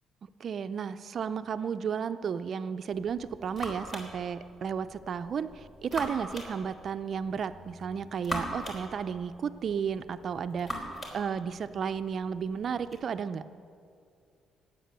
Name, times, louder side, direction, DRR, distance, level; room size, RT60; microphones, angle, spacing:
voice 1, 0.4-10.7 11.1-13.4, right 7 dB, 55° right, 12 dB, 0.5 m, -33 dB
sound 1, 2.9-13.0, equal, 30° left, 3.4 m, -42 dB
18.5 x 8.4 x 6.8 m, 2.4 s
cardioid pair, 90°, 0 cm